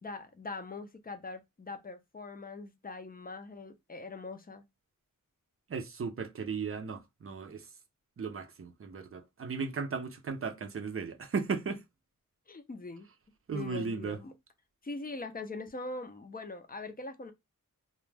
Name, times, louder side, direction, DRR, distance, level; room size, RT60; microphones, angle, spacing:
voice 1, 0.0-4.6 12.5-13.1 13.5-14.3 14.8-17.3, left 3 dB, 30° left, 0.5 m, -42 dB
voice 2, 5.7-7.7 8.2-11.8 13.5-14.2, right 5 dB, 45° right, 0.5 m, -36 dB
2.2 x 2.1 x 3.2 m
wide cardioid pair, 75°, 32 cm